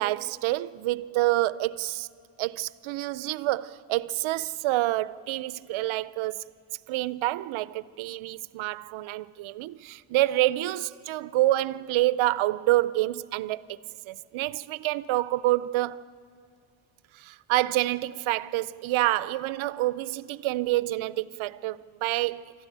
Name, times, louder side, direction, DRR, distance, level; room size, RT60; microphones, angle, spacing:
voice 1, 0.0-2.1 2.4-6.4 6.9-13.8 14.1-16.0 17.1-22.5, right 16 dB, 90° right, 0.6 m, -27 dB
25.5 x 13.5 x 8.9 m
cardioid pair, 75°, 46 cm